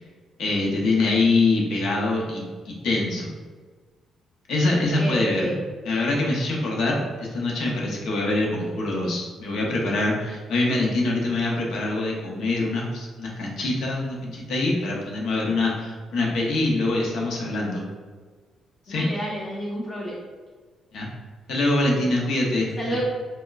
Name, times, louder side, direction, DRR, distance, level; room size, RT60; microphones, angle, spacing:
voice 1, 0.4-3.3 4.5-5.5 5.9-17.8 18.9-19.0 20.9-21.1 21.5-23.0, left 2 dB, 75° left, -2 dB, 0.8 m, -24 dB
voice 2, 5.0-5.6 18.9-20.2 22.8-23.0, equal, 45° left, -8 dB, 0.9 m, -30 dB
4.2 x 2.1 x 2.4 m, 1.4 s
cardioid pair, 90°, 0 cm